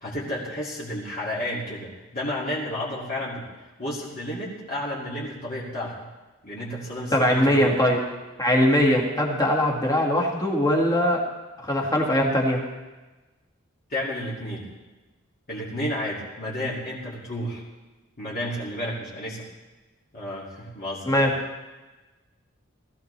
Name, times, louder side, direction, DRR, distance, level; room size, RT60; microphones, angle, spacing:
voice 1, 0.0-6.0 6.4-7.7 13.9-14.7 15.5-17.6 18.2-19.5 20.1-21.3, left 1 dB, 40° left, -6 dB, 2.5 m, -32 dB
voice 2, 7.1-8.0 8.4-11.2 11.6-12.6 21.1-21.3, equal, 15° left, -1 dB, 2.0 m, -21 dB
19.0 x 14.5 x 3.3 m, 1.2 s
head